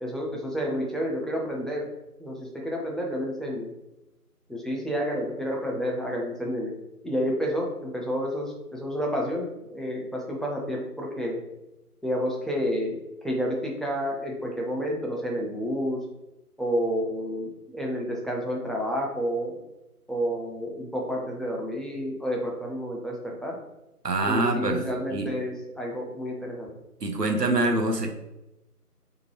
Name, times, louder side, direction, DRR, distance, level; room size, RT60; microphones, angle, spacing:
voice 1, 0.0-1.9 2.2-3.7 4.5-6.7 7.0-11.4 12.0-16.0 16.6-19.5 20.1-23.6 24.2-26.7, equal, ahead, -2 dB, 0.5 m, -30 dB
voice 2, 24.0-25.3 27.0-28.1, right 2 dB, 80° right, 3 dB, 0.9 m, -25 dB
3.7 x 3.3 x 3.0 m, 0.96 s
figure-of-eight pair, 175°, 47 cm